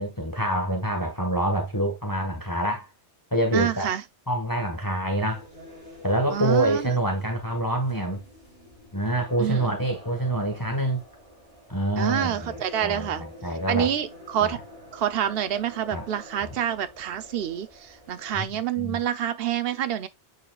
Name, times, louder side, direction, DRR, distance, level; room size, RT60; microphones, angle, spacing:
voice 1, 0.0-2.9 3.3-3.9 4.3-5.4 6.0-8.2 8.9-11.0 11.7-13.9 14.4-14.6 15.9-16.0 16.4-16.5 18.3-18.5 18.8-19.0, right 1 dB, 15° left, 1.5 m, -26 dB
voice 2, 3.5-4.0 6.3-6.9 9.4-9.7 12.0-13.2 13.7-14.6 14.9-20.1, right 10 dB, 60° right, 0.9 m, -27 dB
sound 1, 5.3-18.5, equal, 30° right, 4.8 m, -47 dB
8.9 x 4.8 x 2.4 m
omnidirectional pair, 1.2 m